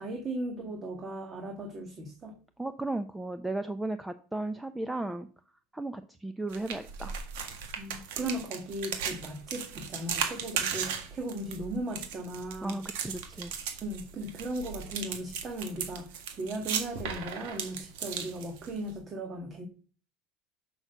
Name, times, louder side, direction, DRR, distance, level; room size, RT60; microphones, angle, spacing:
voice 1, 0.0-2.3 7.7-12.8 13.8-19.7, right 1 dB, 30° right, 3 dB, 1.6 m, -37 dB
voice 2, 2.6-5.3 5.7-7.1 12.6-13.5, right 2 dB, 5° right, 11 dB, 0.6 m, -35 dB
sound 1, 6.5-18.9, right 7 dB, 85° right, 1.8 m, -37 dB
6.3 x 6.1 x 6.6 m, 0.39 s
supercardioid pair, 130°, 0 cm